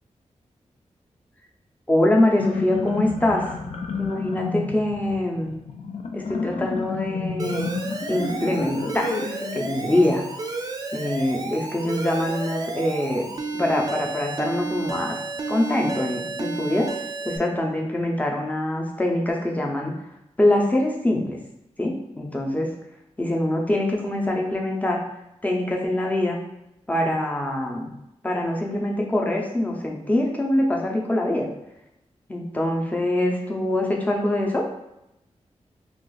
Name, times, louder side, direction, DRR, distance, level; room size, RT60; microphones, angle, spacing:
voice 1, 1.9-3.5 4.0-5.5 6.1-7.7 8.1-10.3 10.9-13.3 13.5-15.2 15.5-19.9 20.4-21.4 21.8-22.7 23.2-25.0 25.4-26.4 26.9-27.9 28.2-31.5 32.3-34.6, left 1 dB, 15° left, 0 dB, 0.6 m, -24 dB
sound 1, 2.2-10.0, left 4 dB, 60° left, 0.4 m, -30 dB
Alarm, 7.4-17.4, right 3 dB, 35° right, 0.4 m, -32 dB
2.4 x 2.4 x 3.9 m, 0.86 s
wide cardioid pair, 90°, 12 cm